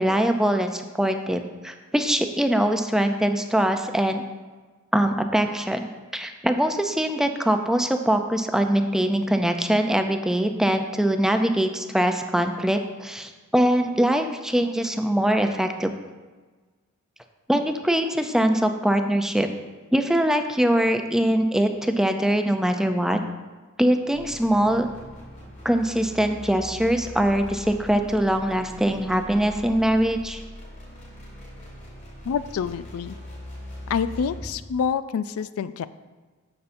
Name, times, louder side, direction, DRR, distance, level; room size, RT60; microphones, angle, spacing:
voice 1, 0.0-4.2 4.9-5.9 6.1-15.9 17.5-19.5 19.9-23.2 23.8-24.9 25.6-30.4, right 1 dB, ahead, 6 dB, 0.4 m, -22 dB
sound 1, 24.1-34.6, left 1 dB, 35° left, 2.5 m, -41 dB
voice 2, 32.3-33.2 33.9-35.9, left 6 dB, 90° left, 14 dB, 0.3 m, -27 dB
9.7 x 6.9 x 2.6 m, 1.3 s
head